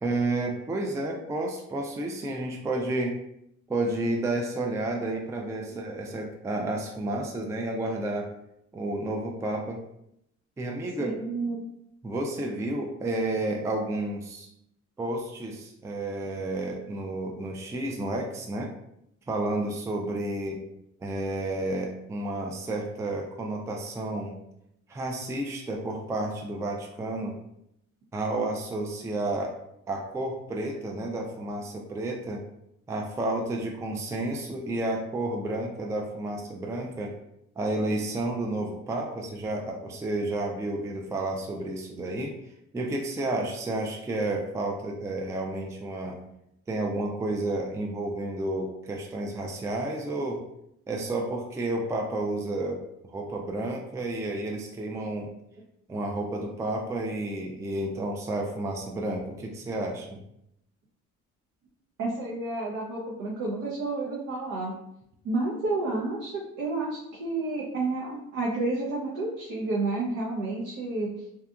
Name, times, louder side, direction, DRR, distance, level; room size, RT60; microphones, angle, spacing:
voice 1, 0.0-3.1 3.7-8.3 8.7-9.8 10.6-11.1 12.0-14.5 15.0-18.7 19.3-20.6 21.0-24.3 24.9-27.4 28.1-29.5 29.9-32.4 32.9-37.1 37.6-42.4 42.7-46.2 46.7-50.4 50.9-52.8 53.1-55.3 55.9-60.2, right 2 dB, 10° right, 1 dB, 0.3 m, -31 dB
voice 2, 11.0-11.6 62.0-64.7 65.2-66.3 66.6-71.1, right 2 dB, 65° right, -5 dB, 0.7 m, -30 dB
2.8 x 2.3 x 2.3 m, 0.78 s
cardioid pair, 90°, 30 cm